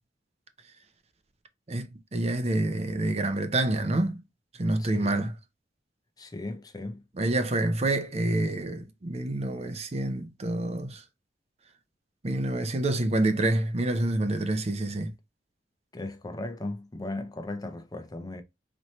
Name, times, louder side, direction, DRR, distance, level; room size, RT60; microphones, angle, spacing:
voice 1, 1.7-4.2 4.6-5.3 7.2-11.0 12.2-15.1, right 2 dB, 35° right, 0.6 m, -27 dB
voice 2, 4.8-5.3 6.2-7.0 15.9-18.4, left 2 dB, 20° left, 0.5 m, -37 dB
4.2 x 3.1 x 3.0 m
head